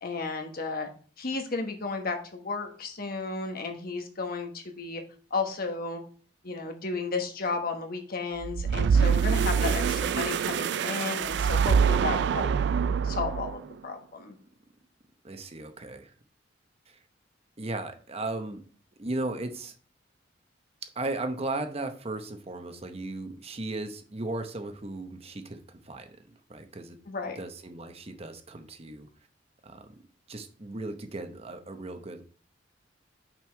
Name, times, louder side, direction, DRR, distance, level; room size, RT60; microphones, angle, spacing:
voice 1, 0.0-0.9 1.2-5.0 5.3-6.0 6.4-12.5 13.0-14.3 27.1-27.4, left 4 dB, 50° left, 4 dB, 1.2 m, -33 dB
sound 1, 8.4-13.7, right 6 dB, 65° right, 0.3 m, -25 dB
voice 2, 15.2-16.1 16.9-17.0 17.6-18.6 19.0-19.7 20.8-27.0 27.2-29.1 29.6-30.0 30.3-32.2, right 2 dB, 35° right, 7 dB, 0.8 m, -36 dB
6.0 x 5.4 x 4.4 m, 0.42 s
head